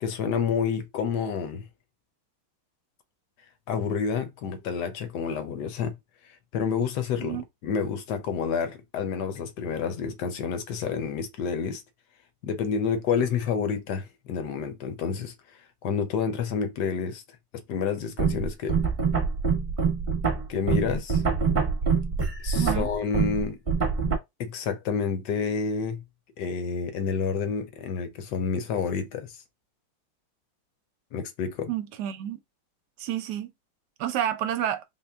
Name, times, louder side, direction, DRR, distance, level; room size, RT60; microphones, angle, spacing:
voice 1, 0.0-1.6 3.7-6.0 6.5-11.8 12.4-15.3 15.8-17.2 17.5-18.8 20.5-21.2 22.4-23.6 24.4-26.0 26.4-29.3 31.1-31.7, left 6 dB, 75° left, 1.2 m, -29 dB
sound 1, 18.2-24.2, right 5 dB, 30° right, 1.1 m, -25 dB
voice 2, 22.5-22.9 31.7-32.4 33.0-33.5 34.0-34.8, right 11 dB, 75° right, 1.1 m, -29 dB
3.9 x 2.1 x 3.4 m
omnidirectional pair, 1.9 m